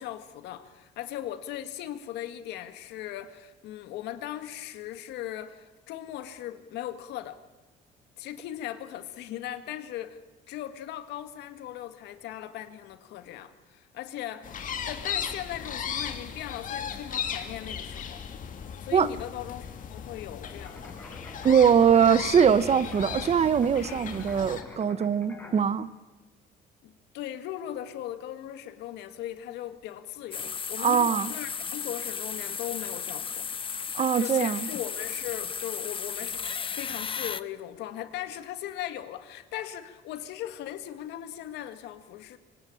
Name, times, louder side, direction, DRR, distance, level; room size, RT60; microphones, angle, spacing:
voice 1, 0.0-7.4 8.2-10.2 10.5-14.6 14.9-18.2 18.8-21.0 26.8-33.5 34.2-36.4 36.7-42.4, left 12 dB, 85° left, 2.0 m, -38 dB
sound 1, 14.4-24.6, left 7 dB, 50° left, 2.7 m, -36 dB
sound 2, 20.6-25.6, left 2 dB, 15° left, 5.8 m, -46 dB
voice 2, 21.4-25.9 30.8-31.3 33.9-34.7, right 7 dB, 40° right, 1.2 m, -22 dB
sound 3, 30.3-37.4, left 6 dB, 30° left, 0.9 m, -34 dB
25.0 x 19.5 x 8.8 m
cardioid pair, 110°, 17 cm